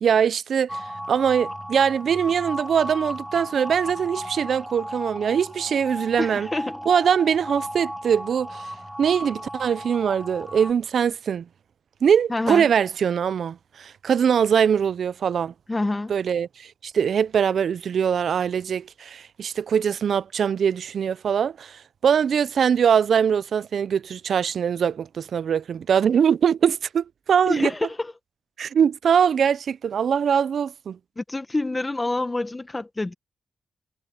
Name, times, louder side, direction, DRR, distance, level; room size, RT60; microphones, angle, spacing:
voice 1, 0.0-6.5 6.9-8.7 9.0-11.5 12.0-15.5 16.1-27.7 28.6-31.0, right 7 dB, 70° right, 0.5 m, -22 dB
sound 1, 0.7-10.7, equal, ahead, 2.5 m, -35 dB
voice 2, 6.2-6.8 12.3-12.7 15.7-16.1 27.5-28.1 31.2-33.1, left 2 dB, 25° left, 1.4 m, -27 dB
cardioid pair, 60°, 0 cm